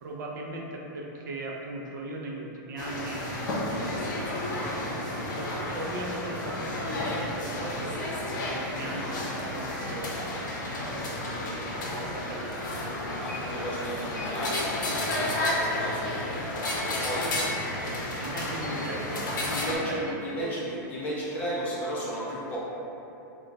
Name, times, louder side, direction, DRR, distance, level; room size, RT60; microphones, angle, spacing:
voice 1, 0.0-3.8 4.2-5.0 5.4-10.3 10.9-12.9 17.5-17.6 18.2-20.6, right 2 dB, 75° right, -1 dB, 0.5 m, -39 dB
sound 1, 2.8-19.8, left 1 dB, 80° left, 0.6 m, -32 dB
voice 2, 11.5-12.1 13.2-17.7 19.4-22.6, equal, 15° left, -7 dB, 0.4 m, -35 dB
2.2 x 2.1 x 3.9 m, 2.9 s
supercardioid pair, 170°, 10 cm